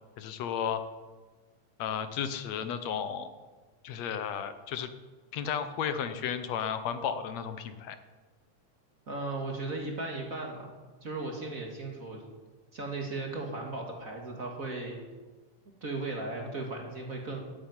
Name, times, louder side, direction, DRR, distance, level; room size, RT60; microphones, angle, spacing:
voice 1, 0.2-0.8 1.8-3.3 3.8-4.9 5.3-8.0, left 8 dB, 70° left, 10 dB, 2.0 m, -33 dB
voice 2, 9.1-10.7 11.0-12.2 12.7-15.0 15.8-17.4, right 2 dB, 30° right, 1 dB, 2.2 m, -36 dB
14.5 x 8.8 x 9.3 m, 1.3 s
omnidirectional pair, 3.3 m